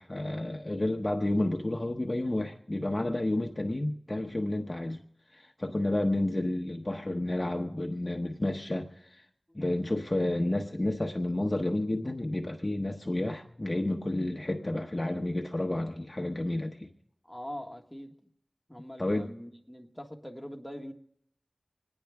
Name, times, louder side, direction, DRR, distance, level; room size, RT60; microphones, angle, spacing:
voice 1, 0.0-5.0 5.3-9.2 9.5-16.9 19.0-19.3, left 1 dB, 30° left, 2 dB, 0.9 m, -30 dB
voice 2, 17.2-18.3 18.7-20.9, equal, 5° left, 1 dB, 1.4 m, -43 dB
26.5 x 9.8 x 3.5 m, 0.73 s
wide cardioid pair, 65°, 0 cm